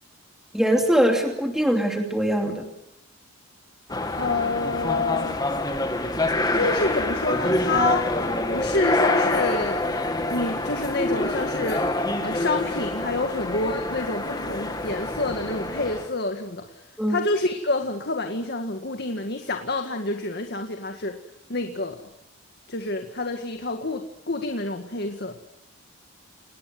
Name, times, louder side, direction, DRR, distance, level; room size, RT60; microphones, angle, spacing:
voice 1, 0.5-2.7 17.0-17.2, equal, ahead, 2 dB, 2.8 m, -22 dB
sound 1, 3.9-16.1, left 2 dB, 20° left, 2.2 m, -26 dB
voice 2, 4.2-5.4 6.5-9.8 10.3-21.2 21.5-22.0 22.7-25.3, left 2 dB, 50° left, 5 dB, 1.9 m, -28 dB
29.0 x 19.5 x 7.8 m, 0.79 s
head